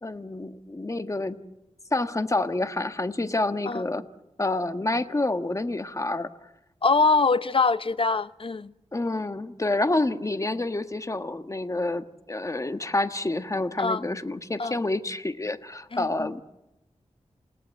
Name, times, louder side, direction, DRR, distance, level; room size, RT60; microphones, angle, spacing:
voice 1, 0.0-1.3 1.9-4.0 4.4-6.3 8.9-16.4, left 2 dB, 25° left, 1.5 m, -28 dB
voice 2, 6.8-8.7 13.8-14.0 14.6-14.7 15.9-16.3, left 4 dB, 50° left, 0.9 m, -23 dB
29.0 x 18.0 x 7.7 m
cardioid pair, 65°, 12 cm